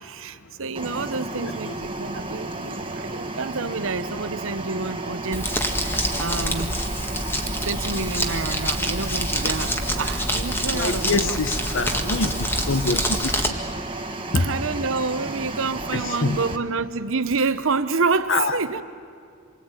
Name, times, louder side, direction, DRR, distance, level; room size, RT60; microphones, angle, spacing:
voice 1, 0.0-6.7 7.5-11.3 14.3-18.8, right 4 dB, 65° right, 11 dB, 1.0 m, -28 dB
sound 1, 0.8-16.6, right 2 dB, 25° right, 1.5 m, -33 dB
voice 2, 1.4-1.8 10.7-13.3 14.3-14.5 15.9-16.4 18.3-18.6, left 3 dB, 60° left, 11 dB, 1.2 m, -25 dB
Crumpling crinkling, 5.3-13.5, equal, 10° left, 1.8 m, -26 dB
27.5 x 23.5 x 9.2 m, 2.3 s
head